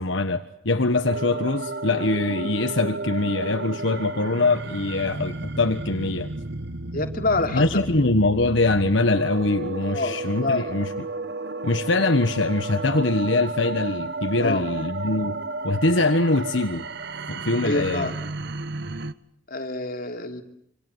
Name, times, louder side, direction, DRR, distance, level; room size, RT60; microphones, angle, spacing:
voice 1, 0.0-6.3 7.5-10.9 11.6-15.4 15.6-16.9 17.3-18.1, left 2 dB, 70° left, 7 dB, 1.4 m, -23 dB
sound 1, 1.0-19.1, right 3 dB, 55° right, 1.1 m, -33 dB
voice 2, 6.9-7.8 9.8-10.7 14.4-14.6 17.6-18.2 19.5-20.4, left 2 dB, 45° left, 5 dB, 3.0 m, -27 dB
27.0 x 26.0 x 8.1 m, 0.71 s
head